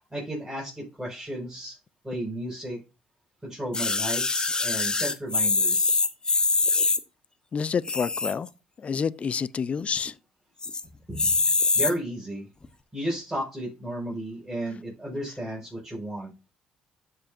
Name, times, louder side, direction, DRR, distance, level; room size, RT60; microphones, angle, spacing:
voice 1, 0.1-1.8 2.0-2.8 3.4-6.0 11.1-11.3 11.7-12.5 12.9-16.3, right 1 dB, 10° right, 5.5 m, -33 dB
sound 1, 3.7-7.0 7.8-8.5 8.9-9.0 9.2-9.3 9.7-10.1 10.6-10.8 11.2-11.9 12.6-12.7, left 3 dB, 25° left, 0.9 m, -24 dB
voice 2, 7.5-8.5 8.8-10.1, left 6 dB, 45° left, 0.6 m, -28 dB
13.0 x 5.4 x 2.6 m
supercardioid pair, 60°, 3 cm